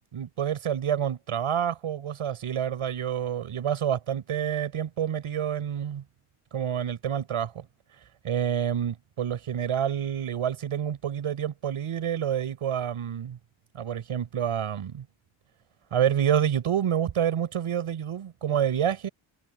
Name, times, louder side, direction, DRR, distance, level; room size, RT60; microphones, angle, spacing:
voice 1, 0.1-6.0 6.5-7.6 8.2-13.4 13.7-15.1 15.9-19.1, right 9 dB, 85° right, 6.2 m, -28 dB
cardioid pair, 65°, 50 cm